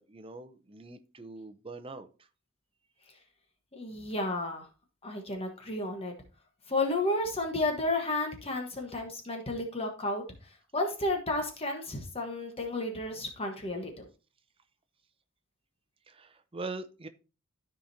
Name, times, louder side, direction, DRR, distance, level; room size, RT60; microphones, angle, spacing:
voice 1, 0.0-2.1 16.1-17.1, right 3 dB, 25° right, 0.7 m, -42 dB
voice 2, 3.7-4.7 5.0-6.1 6.7-14.0, left 2 dB, 25° left, 1.2 m, -32 dB
13.0 x 5.1 x 2.7 m
head